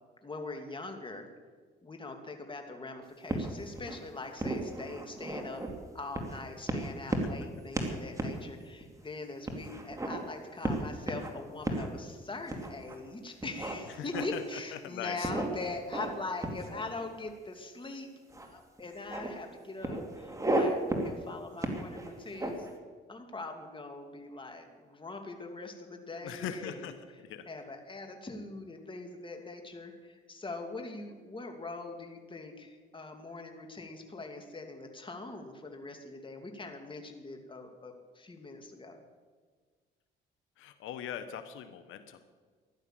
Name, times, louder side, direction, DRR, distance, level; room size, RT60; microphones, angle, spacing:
voice 1, 0.2-1.3 1.8-5.6 5.9-18.1 18.4-22.7 23.1-26.9 27.5-39.0, left 3 dB, 25° left, 4 dB, 2.6 m, -42 dB
sound 1, 3.3-4.0 4.4-5.7 6.1-6.4 6.7-7.4 7.7-8.4 8.8-8.9 9.5-10.2 10.6-11.3 11.6-11.9 12.5-13.0 13.4-14.5 15.2-16.2 16.4-17.3 18.3-18.5 18.8-19.3 19.8-20.6 20.9-21.1 21.6-22.7, right 1 dB, 15° right, 2.8 m, -34 dB
voice 2, 14.0-14.4 14.7-15.3 26.2-27.5 40.6-42.2, left 9 dB, 90° left, 9 dB, 1.1 m, -40 dB
15.5 x 11.5 x 7.6 m, 1.5 s
cardioid pair, 90°, 20 cm